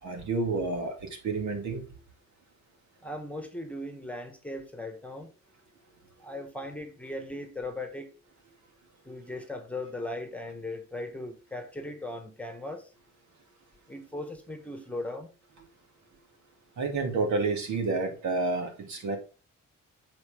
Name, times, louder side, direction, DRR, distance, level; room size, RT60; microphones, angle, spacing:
voice 1, 0.0-1.9 16.8-19.2, right 3 dB, 75° right, 2.4 m, -29 dB
voice 2, 3.0-5.3 6.2-8.1 9.0-12.9 13.9-15.3, left 1 dB, 5° left, 1.3 m, -38 dB
8.0 x 4.5 x 5.0 m
cardioid pair, 140°, 29 cm